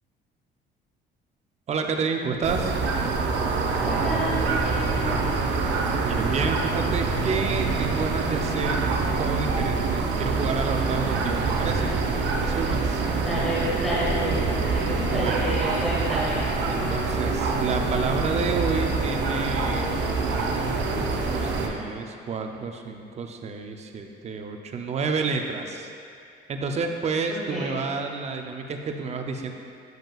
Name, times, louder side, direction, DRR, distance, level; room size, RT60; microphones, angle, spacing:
voice 1, 1.7-2.7 6.0-11.9 12.4-13.1 14.9-15.6 16.7-25.9 26.5-29.5, right 4 dB, 35° right, 4 dB, 0.5 m, -30 dB
sound 1, 2.4-21.7, right 4 dB, 70° right, 0.7 m, -25 dB
voice 2, 3.8-5.2 13.1-16.5 27.3-27.8, right 1 dB, ahead, -9 dB, 1.5 m, -30 dB
Wind instrument woodwind instrument, 13.9-21.9, left 4 dB, 30° left, 0.6 m, -38 dB
9.1 x 5.1 x 2.3 m, 2.4 s
cardioid pair, 125°, 19 cm